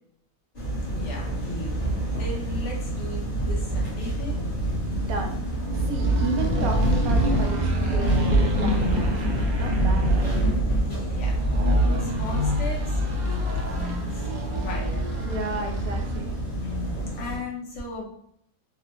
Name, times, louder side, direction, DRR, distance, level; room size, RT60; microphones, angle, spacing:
sound 1, 0.5-17.4, right 1 dB, 30° left, 1.0 m, -26 dB
voice 1, 0.9-1.8 2.1-4.4 10.8-11.4 11.7-14.3 14.6-14.9 16.5-18.0, left 2 dB, 65° left, -2 dB, 1.2 m, -37 dB
voice 2, 4.9-10.4 15.2-16.4, right 3 dB, 80° right, 3 dB, 1.0 m, -33 dB
sound 2, 5.5-16.3, left 2 dB, 55° right, 0.5 m, -30 dB
3.3 x 2.1 x 2.9 m, 0.70 s
omnidirectional pair, 1.5 m